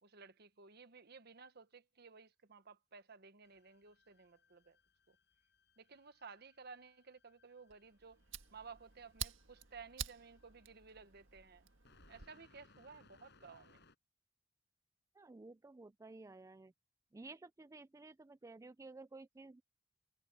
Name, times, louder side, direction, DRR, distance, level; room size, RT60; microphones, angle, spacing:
voice 1, 0.0-4.8 5.1-5.2 5.8-8.2 8.5-11.7 12.1-13.8, right 5 dB, 55° right, 1.2 m, -56 dB
sound 1, 3.4-13.9, left 3 dB, 65° left, 5.2 m, -70 dB
Fire, 7.7-12.3, right 8 dB, 90° right, 1.6 m, -49 dB
voice 2, 15.2-16.7 17.1-19.6, right 3 dB, 15° right, 0.3 m, -54 dB
head